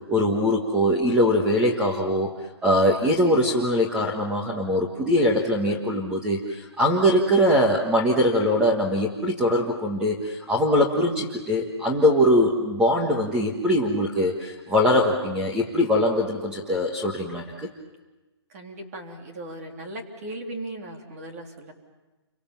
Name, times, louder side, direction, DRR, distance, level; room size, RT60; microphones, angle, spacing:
voice 1, 0.1-2.3 2.6-17.7, left 1 dB, 5° right, -2 dB, 1.5 m, -22 dB
voice 2, 18.5-21.7, right 1 dB, 35° right, 2 dB, 3.5 m, -37 dB
30.0 x 25.0 x 7.4 m, 1.2 s
hypercardioid pair, 170°, 14 cm